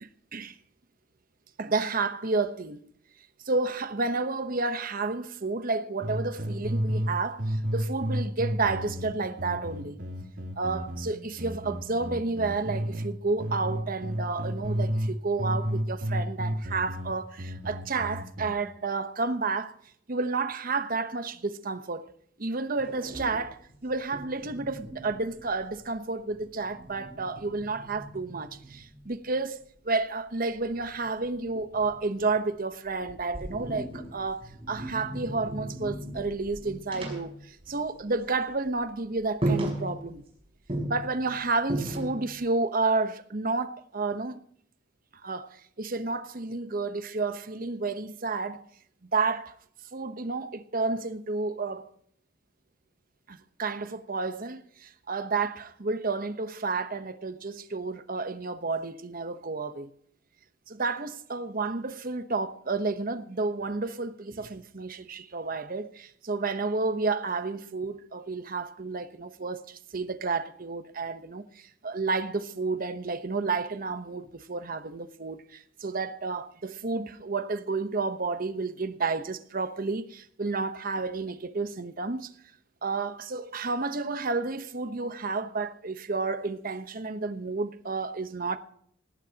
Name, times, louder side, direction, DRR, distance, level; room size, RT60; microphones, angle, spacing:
voice 1, 0.0-0.6 1.6-2.8 3.4-10.0 10.6-19.8 20.1-22.1 22.4-40.2 40.9-44.4 45.1-48.6 49.0-49.5 49.9-51.9 53.3-59.9 60.7-82.3 82.8-88.6, right 3 dB, 50° right, 1.0 m, -31 dB
sound 1, 6.0-7.1 7.4-13.1 13.4-15.1 15.4-18.5, equal, 75° right, 3.3 m, -31 dB
sound 2, 22.8-25.9 26.2-29.2 30.5-32.5 32.9-38.3 38.5-38.7 39.1-39.2 39.4-40.3 40.7-42.4, right 1 dB, 30° right, 5.9 m, -37 dB
18.5 x 17.0 x 2.9 m
head